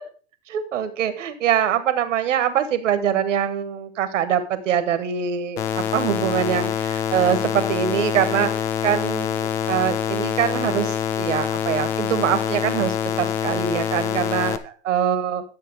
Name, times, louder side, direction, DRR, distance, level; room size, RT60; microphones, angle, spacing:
voice 1, 0.5-15.4, right 9 dB, 90° right, 11 dB, 1.6 m, -23 dB
sound 1, 5.6-14.6, left 8 dB, 70° left, 1.2 m, -25 dB
12.0 x 7.3 x 4.8 m, 0.38 s
hypercardioid pair, 120°, 36 cm